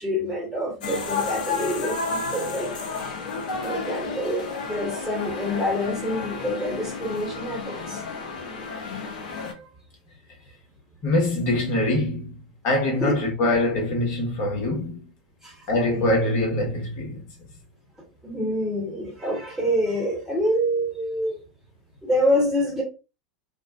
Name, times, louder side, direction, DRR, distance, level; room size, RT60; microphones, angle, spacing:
voice 1, 0.0-2.7 3.6-8.0 8.4-8.5 9.3-9.7 12.9-13.2 15.4-16.0 18.2-21.4 22.0-22.8, equal, ahead, 1.0 m, -27 dB
sound 1, 0.8-9.5, left 4 dB, 70° left, 0.6 m, -31 dB
voice 2, 11.0-12.3 12.6-15.0 15.7-17.2, left 1 dB, 50° left, 1.2 m, -24 dB
2.5 x 2.1 x 2.3 m
hypercardioid pair, 90°, 5 cm